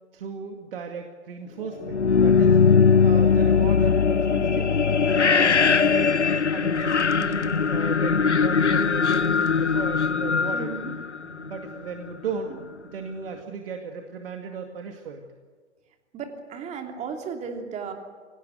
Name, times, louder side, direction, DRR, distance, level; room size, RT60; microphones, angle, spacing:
voice 1, 0.1-2.6 3.0-4.8 5.2-6.1 6.5-10.7 11.2-12.5 12.9-15.2, right 5 dB, 55° right, 3 dB, 2.3 m, -35 dB
sound 1, 1.8-11.7, left 5 dB, 80° left, 1.1 m, -20 dB
voice 2, 10.5-10.9 16.1-17.9, right 5 dB, 20° right, 4 dB, 3.1 m, -35 dB
25.5 x 18.0 x 9.3 m, 1.6 s
figure-of-eight pair, 115°, 34 cm